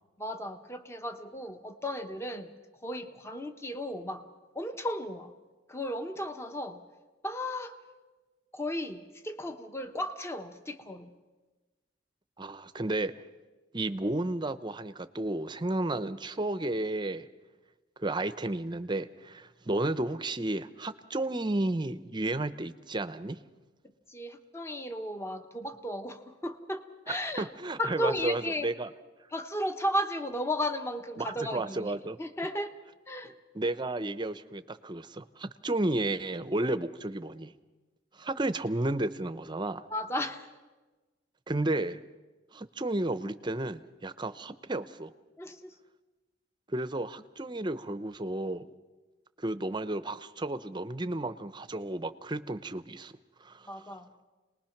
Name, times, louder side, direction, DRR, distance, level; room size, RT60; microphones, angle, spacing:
voice 1, 0.2-2.5 2.8-4.3 4.5-5.3 5.7-6.8 7.2-7.8 8.5-11.1 24.1-27.5 27.8-28.7 29.3-32.7 33.1-33.3 39.9-40.5 45.4-45.7 53.7-54.1, left 1 dB, 15° left, 8 dB, 1.1 m, -35 dB
voice 2, 12.4-13.1 13.7-17.3 18.0-23.4 27.4-28.9 31.2-32.2 33.5-37.5 38.2-39.8 41.5-42.0 42.5-45.1 46.7-48.7 49.4-53.1 53.4-53.7, right 2 dB, 25° right, 12 dB, 0.7 m, -32 dB
27.5 x 20.0 x 5.9 m, 1.2 s
head